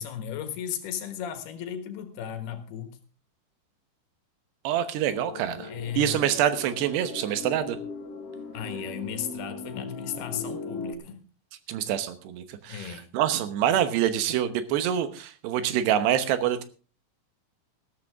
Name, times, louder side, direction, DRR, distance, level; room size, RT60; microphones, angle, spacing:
voice 1, 0.0-3.0 5.6-6.2 8.5-11.2 12.7-13.1, left 9 dB, 75° left, 3.4 m, -35 dB
voice 2, 4.6-5.7 6.0-7.8 11.7-16.6, right 10 dB, 85° right, 3.2 m, -26 dB
sound 1, 5.1-10.9, left 3 dB, 60° left, 1.6 m, -39 dB
15.0 x 13.0 x 3.6 m
omnidirectional pair, 4.7 m